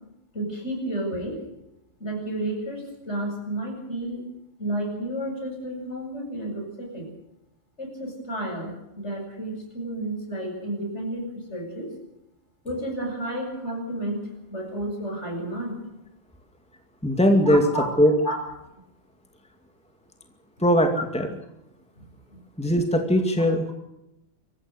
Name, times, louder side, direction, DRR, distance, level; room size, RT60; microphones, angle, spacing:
voice 1, 0.3-1.4 2.0-4.2 4.6-7.1 7.8-11.9 12.6-14.2 14.5-15.8 17.4-17.9 18.2-18.4 20.9-21.0 22.0-22.1 22.3-22.4, right 1 dB, 65° left, 1 dB, 8.3 m, -31 dB
voice 2, 17.0-17.6 18.0-18.1 20.6-21.3 22.6-23.7, equal, 5° left, 4 dB, 2.3 m, -20 dB
25.5 x 15.0 x 8.1 m, 0.88 s
omnidirectional pair, 1.3 m